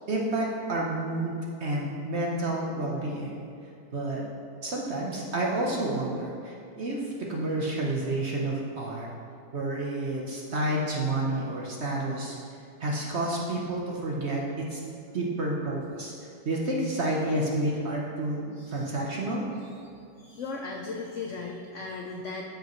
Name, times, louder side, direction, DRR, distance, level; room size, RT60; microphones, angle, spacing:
voice 1, 0.1-3.3 3.9-4.2 4.6-9.1 9.5-12.4 12.8-14.8 15.1-16.1 16.4-18.4 18.7-19.4, right 1 dB, 50° right, -3 dB, 0.9 m, -30 dB
voice 2, 18.6-18.9 20.2-22.4, left 4 dB, 85° left, 1 dB, 0.6 m, -37 dB
13.5 x 5.2 x 3.1 m, 2.5 s
omnidirectional pair, 2.0 m